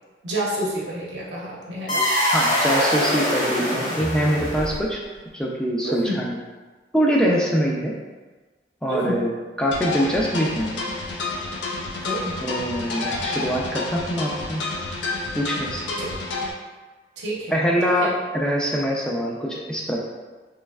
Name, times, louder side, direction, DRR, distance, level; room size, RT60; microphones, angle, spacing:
voice 1, 0.2-2.0 5.8-6.2 8.9-9.3 12.0-12.4 16.0-16.1 17.2-17.5 18.0-18.1, right 1 dB, 80° right, -5 dB, 0.8 m, -29 dB
sound 1, 1.9-5.0, equal, 45° left, 1.2 m, -23 dB
voice 2, 2.3-5.0 5.3-6.4 6.9-7.9 8.8-9.3 9.6-10.8 12.4-14.6 15.3-15.8 17.5-20.0, equal, 5° left, -3 dB, 0.4 m, -23 dB
sound 2, 9.7-16.5, left 3 dB, 90° left, 0.5 m, -29 dB
3.3 x 3.2 x 2.3 m, 1.3 s
head